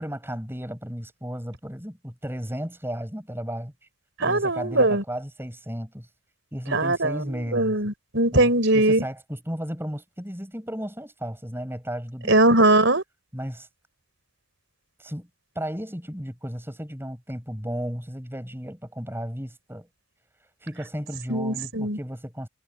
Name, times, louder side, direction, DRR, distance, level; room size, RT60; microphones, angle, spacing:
voice 1, 0.0-3.7 4.2-6.1 6.5-7.8 8.3-12.4 13.3-13.7 15.0-15.3 15.5-19.9 20.6-22.5, equal, 10° right, 7.8 m, -34 dB
voice 2, 4.2-5.0 6.7-9.0 12.3-13.0 21.3-22.0, right 2 dB, 55° right, 4.6 m, -21 dB
head